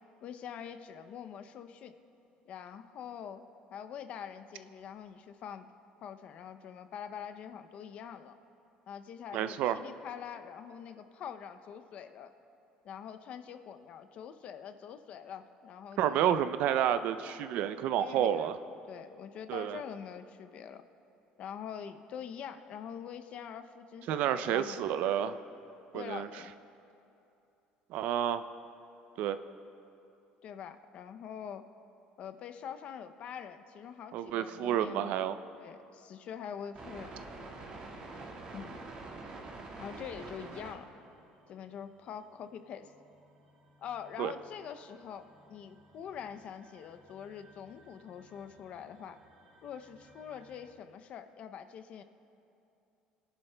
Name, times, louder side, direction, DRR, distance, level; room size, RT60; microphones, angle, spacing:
voice 1, 0.2-2.0 2.5-3.4 3.7-5.7 6.0-8.3 8.9-12.3 12.8-16.2 18.0-18.5 18.9-20.8 21.4-24.8 25.9-26.5 30.4-31.6 32.2-35.1 35.6-37.2 38.5-38.8 39.8-40.9 41.5-42.9 43.8-49.2 49.6-52.0, left 8 dB, 50° left, 9 dB, 0.5 m, -44 dB
voice 2, 9.3-9.8 16.0-18.5 19.5-19.8 24.1-25.4 25.9-26.3 27.9-28.4 29.2-29.4 34.1-35.4 44.2-44.3, right 10 dB, 65° right, 12 dB, 0.4 m, -30 dB
sound 1, 36.7-40.9 41.3-50.7, right 2 dB, 40° right, 1.8 m, -50 dB
22.5 x 11.0 x 2.2 m, 2.8 s
cardioid pair, 140°, 3 cm